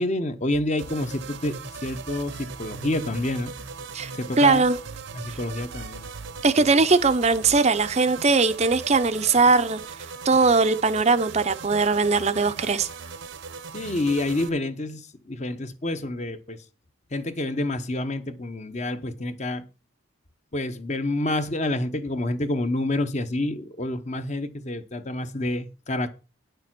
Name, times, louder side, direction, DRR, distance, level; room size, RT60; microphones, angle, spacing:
voice 1, 0.0-1.5 1.8-3.5 4.1-4.7 5.1-6.1 13.7-16.6 17.1-19.7 20.5-26.1, left 2 dB, 35° left, 0.8 m, -28 dB
sound 1, 0.8-14.5, right 5 dB, 60° right, 0.8 m, -39 dB
voice 2, 4.4-4.8 6.4-9.8 10.2-12.9, right 4 dB, 30° right, 0.6 m, -20 dB
9.7 x 6.7 x 6.0 m
head